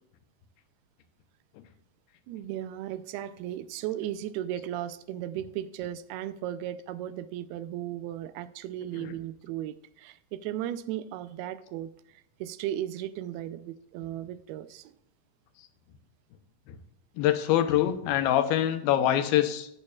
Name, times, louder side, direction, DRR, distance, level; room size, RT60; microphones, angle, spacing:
voice 1, 2.3-14.9, right 12 dB, 90° right, 14 dB, 2.5 m, -36 dB
voice 2, 17.2-19.7, left 12 dB, 80° left, 8 dB, 2.4 m, -25 dB
13.0 x 8.4 x 2.3 m, 0.76 s
omnidirectional pair, 4.4 m